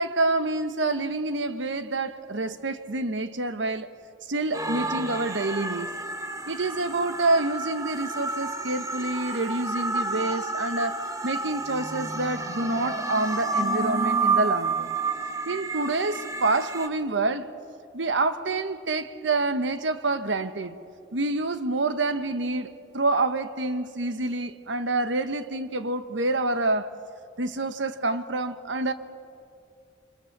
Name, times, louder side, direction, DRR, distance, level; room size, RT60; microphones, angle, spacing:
voice 1, 0.0-3.9 4.3-5.9 6.5-14.9 15.4-17.5 17.9-20.8 21.1-26.9 27.4-28.9, right 2 dB, 80° right, 1.2 m, -27 dB
sound 1, 4.5-16.9, right 3 dB, 20° right, 1.2 m, -30 dB
28.0 x 25.0 x 6.7 m
head